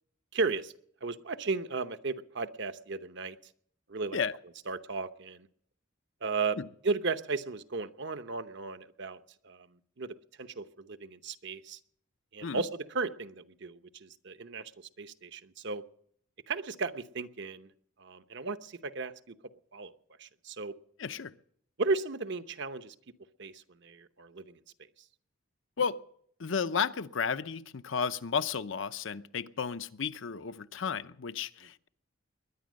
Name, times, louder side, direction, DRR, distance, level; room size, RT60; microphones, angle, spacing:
voice 1, 0.3-0.7 1.0-3.4 3.9-4.2 4.7-5.5 6.2-6.6 6.8-11.8 12.3-15.8 16.5-17.7 18.0-19.3 19.7-19.9 20.2-20.7 21.8-22.9 23.4-24.6, right 4 dB, 60° right, 0.9 m, -35 dB
voice 2, 21.0-21.3 25.8-26.0 26.4-31.9, left 6 dB, 70° left, 0.7 m, -33 dB
21.0 x 10.5 x 6.4 m
head